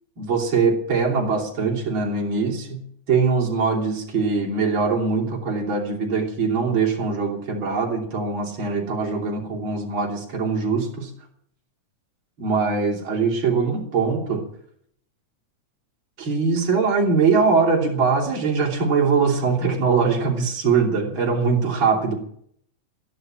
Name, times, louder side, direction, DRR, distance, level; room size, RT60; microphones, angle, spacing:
voice 1, 0.2-11.1 12.4-14.4 16.2-22.2, right 5 dB, 40° right, -1 dB, 4.1 m, -22 dB
14.0 x 11.0 x 9.0 m, 0.65 s
omnidirectional pair, 3.5 m